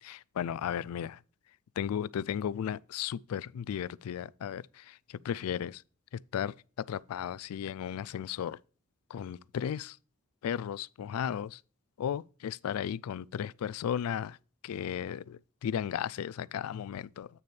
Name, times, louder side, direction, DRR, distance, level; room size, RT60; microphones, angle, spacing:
voice 1, 0.0-1.2 1.8-5.8 6.3-8.6 9.1-10.0 10.4-11.6 12.0-14.4 14.6-17.3, left 9 dB, 90° left, 0.3 m, -35 dB
8.4 x 6.8 x 3.2 m
head